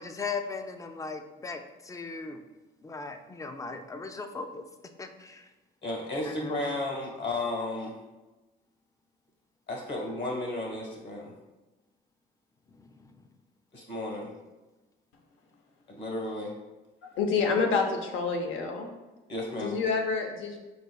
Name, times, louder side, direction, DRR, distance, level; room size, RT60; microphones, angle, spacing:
voice 1, 0.0-2.4 2.8-4.7 5.0-5.5 6.2-6.6 12.7-13.3, left 4 dB, 15° left, 7 dB, 0.4 m, -38 dB
voice 2, 5.8-8.0 9.7-11.3 13.7-14.3 15.9-16.5 19.3-19.8, left 2 dB, 60° left, 0 dB, 1.4 m, -33 dB
voice 3, 17.0-18.9 19.6-20.6, left 5 dB, 85° left, 3 dB, 0.7 m, -28 dB
4.8 x 4.1 x 2.3 m, 1.1 s
cardioid pair, 90°, 20 cm